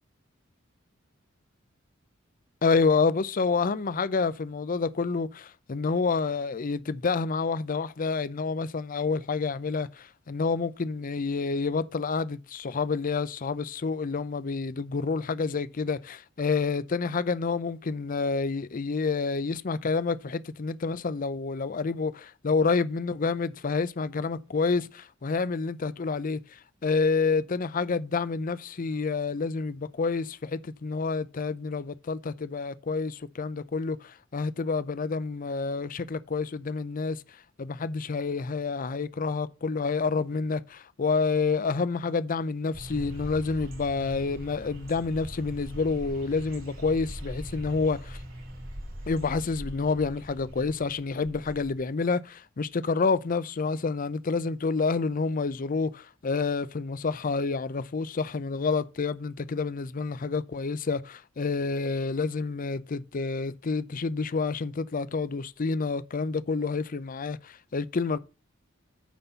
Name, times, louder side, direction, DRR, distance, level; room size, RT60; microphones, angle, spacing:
voice 1, 2.6-48.2 49.1-68.2, left 4 dB, 45° left, 0.5 m, -28 dB
sound 1, 42.7-51.9, equal, 80° right, 4.6 m, -42 dB
9.2 x 4.2 x 6.9 m
head